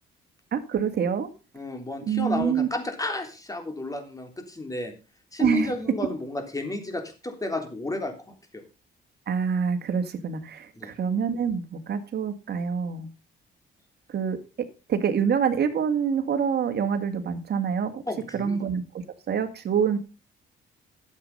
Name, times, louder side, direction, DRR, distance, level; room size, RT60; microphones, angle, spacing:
voice 1, 0.5-1.3 2.1-2.7 5.4-5.7 9.3-13.1 14.1-14.4 14.9-18.0 18.3-18.8 19.3-20.0, right 7 dB, 55° right, 7 dB, 2.0 m, -26 dB
voice 2, 1.5-4.9 5.3-8.6 10.8-10.9 18.1-18.6, left 2 dB, 15° left, 6 dB, 3.4 m, -32 dB
12.0 x 8.0 x 5.5 m, 0.32 s
cardioid pair, 90°, 20 cm